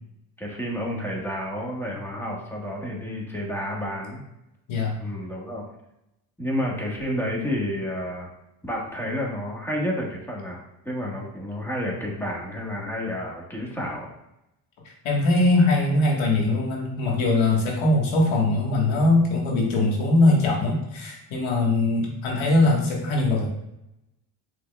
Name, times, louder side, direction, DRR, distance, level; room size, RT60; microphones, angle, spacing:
voice 1, 0.4-4.2 5.0-5.6 6.4-8.3 8.7-14.1, equal, 5° left, -2 dB, 1.3 m, -30 dB
voice 2, 15.0-23.5, left 2 dB, 75° left, -1 dB, 1.4 m, -21 dB
6.4 x 3.5 x 2.2 m, 0.86 s
cardioid pair, 85°, 48 cm